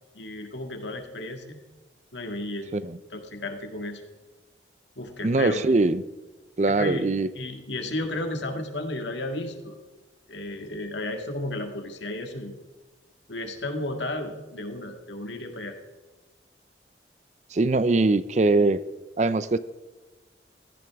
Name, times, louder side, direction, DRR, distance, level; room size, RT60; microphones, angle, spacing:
voice 1, 0.1-1.6 2.1-4.0 5.0-5.6 6.7-7.1 7.3-9.8 10.3-12.5 13.3-15.8, left 1 dB, 85° left, 5 dB, 1.9 m, -33 dB
voice 2, 5.2-6.0 6.6-7.3 17.5-18.8 19.2-19.6, right 2 dB, 40° right, 15 dB, 0.5 m, -22 dB
16.0 x 14.0 x 3.6 m, 1.2 s
head